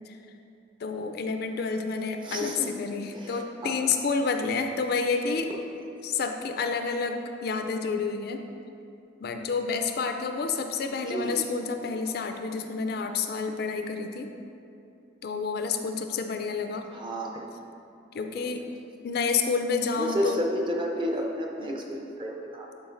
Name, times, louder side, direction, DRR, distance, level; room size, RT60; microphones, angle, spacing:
voice 1, 0.8-5.5 6.0-8.4 9.2-14.3 15.2-16.8 18.1-18.6 19.0-20.4, left 5 dB, 50° left, 6 dB, 0.3 m, -29 dB
voice 2, 2.2-2.7 3.1-3.8 11.1-11.4 16.9-17.5 18.4-18.5 19.9-22.7, equal, 25° right, -1 dB, 0.6 m, -31 dB
11.0 x 4.5 x 2.5 m, 2.7 s
head